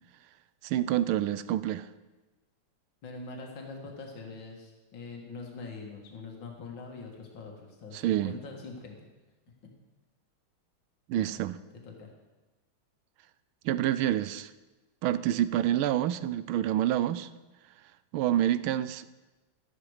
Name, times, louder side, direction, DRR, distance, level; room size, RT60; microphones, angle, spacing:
voice 1, 0.6-1.9 7.9-8.4 11.1-11.6 13.6-14.5 15.0-17.3 18.1-19.1, right 12 dB, 85° right, 15 dB, 1.4 m, -27 dB
voice 2, 3.0-8.9 11.1-11.4 11.8-12.1, left 4 dB, 70° left, 0 dB, 2.5 m, -43 dB
13.0 x 11.0 x 4.9 m, 1.2 s
omnidirectional pair, 2.2 m